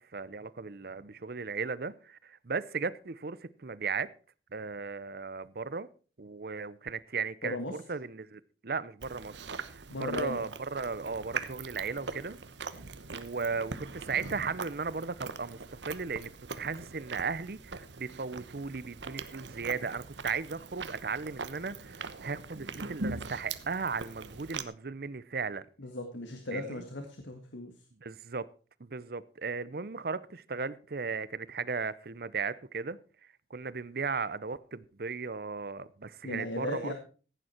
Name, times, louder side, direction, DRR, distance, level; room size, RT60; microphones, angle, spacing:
voice 1, 0.0-4.1 4.5-5.9 6.2-12.4 13.1-15.6 15.8-16.3 16.6-25.7 26.5-26.8 28.0-28.5 28.8-33.0 33.5-36.9, right 5 dB, 55° right, 0.7 m, -36 dB
voice 2, 7.4-7.8 9.9-10.4 25.8-27.9 36.2-36.9, left 1 dB, 85° left, 1.8 m, -37 dB
Chewing mastication, 9.0-24.6, right 4 dB, 75° right, 1.0 m, -42 dB
15.5 x 9.2 x 4.4 m
head